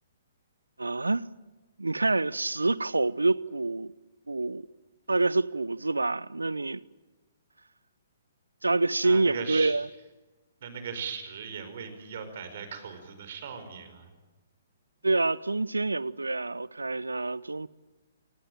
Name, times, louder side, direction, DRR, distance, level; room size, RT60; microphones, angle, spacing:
voice 1, 0.8-1.3 1.8-3.9 4.3-4.7 5.1-6.8 8.6-9.9 15.0-17.7, right 3 dB, 80° right, 0.8 m, -27 dB
voice 2, 9.0-9.8 10.6-14.1, right 6 dB, 50° right, 5.1 m, -38 dB
28.5 x 19.0 x 9.0 m
figure-of-eight pair, 125°, 0 cm